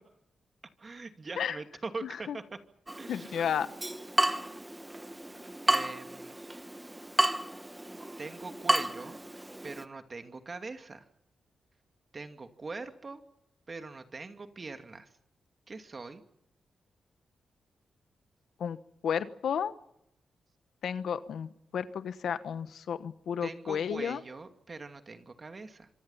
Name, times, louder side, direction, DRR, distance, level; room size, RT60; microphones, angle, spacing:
voice 1, 0.8-2.6 3.0-3.5 5.7-6.3 8.2-9.2 9.6-11.1 12.1-13.2 13.7-15.1 15.7-16.2 23.4-25.9, right 3 dB, 40° right, 7 dB, 2.5 m, -42 dB
Water tap faucet / Drip, 2.9-9.8, right 1 dB, 15° right, 1.3 m, -32 dB
voice 2, 3.1-3.7 18.6-18.8 19.0-19.7 20.8-24.2, left 8 dB, 80° left, 13 dB, 1.2 m, -32 dB
25.5 x 24.5 x 5.7 m, 0.80 s
cardioid pair, 70°, 0 cm